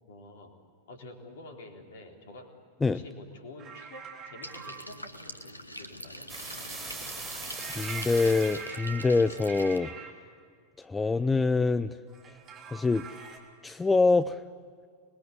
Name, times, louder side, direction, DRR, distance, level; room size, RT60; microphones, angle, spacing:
voice 1, 0.1-0.6 0.9-2.5 2.9-6.3, left 2 dB, 55° left, 2 dB, 3.9 m, -48 dB
sound 1, 3.6-4.8 7.6-10.1 12.1-13.4, right 6 dB, 30° right, 3.7 m, -43 dB
sound 2, 4.4-9.8, equal, 85° left, 1.3 m, -44 dB
sound 3, 6.3-8.6, right 3 dB, 15° right, 5.3 m, -39 dB
voice 2, 7.6-9.9 10.8-11.9 12.7-13.0 13.6-14.4, left 3 dB, 10° left, 13 dB, 0.5 m, -25 dB
27.0 x 21.5 x 8.3 m, 2.1 s
figure-of-eight pair, 90°, 0 cm